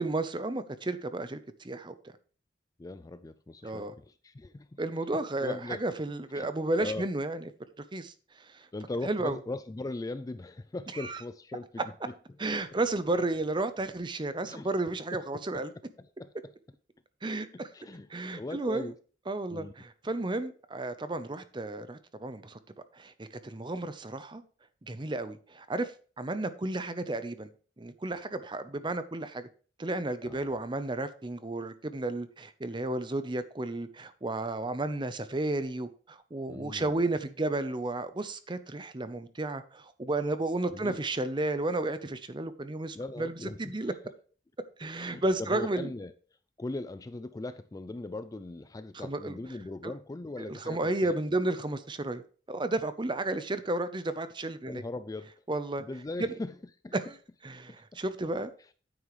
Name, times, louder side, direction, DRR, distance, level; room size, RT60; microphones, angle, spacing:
voice 1, 0.0-1.9 3.6-3.9 4.8-7.4 7.9-8.1 8.5-8.7 9.0-9.4 10.9-11.2 12.4-15.7 17.2-17.7 18.1-18.9 19.3-22.6 22.9-24.4 24.8-25.9 26.2-27.5 27.8-29.5 29.8-43.9 44.8-45.9 48.9-49.4 49.8-49.9 50.5-52.2 52.5-54.8 55.5-55.8 56.2-56.3 56.9-57.2 57.4-58.5, right 2 dB, 25° right, 0.7 m, -32 dB
voice 2, 2.8-4.8 5.1-5.8 6.3-6.5 6.8-7.1 8.7-11.8 14.4-14.7 15.3-15.6 16.0-16.3 17.5-18.9 19.5-19.7 30.2-30.6 36.5-37.0 40.7-41.0 42.9-44.0 45.0-46.1 46.6-51.4 54.7-55.3 55.8-56.6 56.8-56.9 57.7-58.0, left 2 dB, 20° left, 0.3 m, -39 dB
9.6 x 8.9 x 3.1 m
head